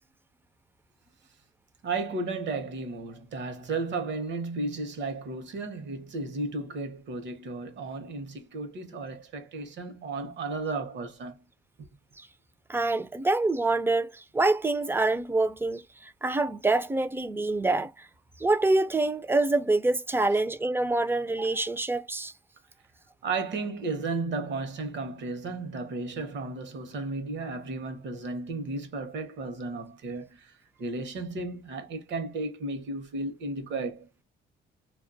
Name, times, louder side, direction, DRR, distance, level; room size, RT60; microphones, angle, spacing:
voice 1, 1.8-11.4 11.8-11.9 23.2-34.1, right 3 dB, 65° right, 0.8 m, -34 dB
voice 2, 12.7-18.1 18.4-22.3, right 2 dB, 10° right, 0.3 m, -26 dB
2.2 x 2.2 x 2.5 m
cardioid pair, 90°, 20 cm